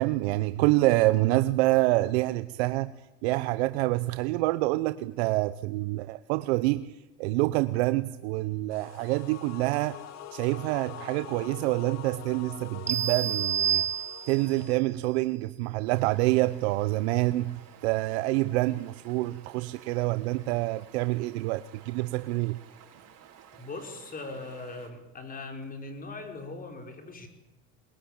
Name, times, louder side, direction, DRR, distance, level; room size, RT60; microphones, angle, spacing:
voice 1, 0.0-2.9 3.2-6.9 7.2-10.0 10.3-13.8 14.3-22.6, right 19 dB, 85° right, 0.9 m, -27 dB
sound 1, 8.7-14.8, left 11 dB, 55° left, 2.1 m, -45 dB
sound 2, 12.9-14.6, right 9 dB, 20° right, 0.8 m, -28 dB
Stream, 15.8-24.9, right 9 dB, 50° right, 5.4 m, -54 dB
voice 2, 23.6-27.3, left 3 dB, 25° left, 5.2 m, -40 dB
22.0 x 21.5 x 8.9 m
supercardioid pair, 115°, 32 cm